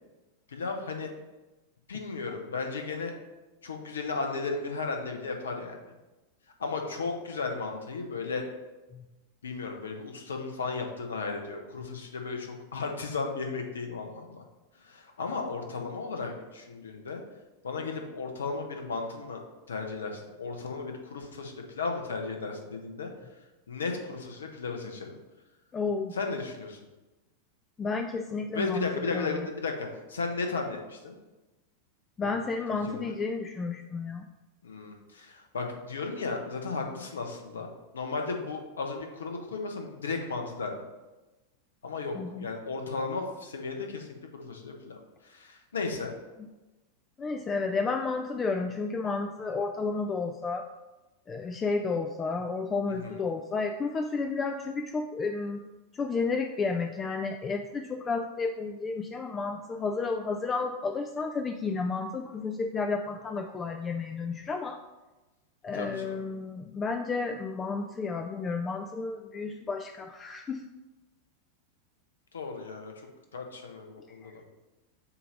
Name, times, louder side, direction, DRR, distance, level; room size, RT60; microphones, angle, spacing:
voice 1, 0.5-1.1 1.9-3.1 3.6-5.8 6.6-8.5 9.4-14.4 14.8-17.2 17.6-19.4 19.7-23.1 23.7-25.1 26.1-26.8 28.5-31.1 32.2-32.4 32.7-33.1 34.6-40.7 41.8-46.1 53.0-53.2 65.7-66.2 72.3-73.1 73.3-74.4, left 4 dB, 70° left, 3 dB, 0.9 m, -35 dB
voice 2, 25.7-26.1 27.8-29.4 32.2-34.3 42.1-42.5 47.2-50.7 51.3-55.6 55.9-64.8 65.6-70.6 74.2-74.3, left 4 dB, 20° left, 5 dB, 0.3 m, -32 dB
7.0 x 2.8 x 5.0 m, 1.1 s
figure-of-eight pair, 90°, 0 cm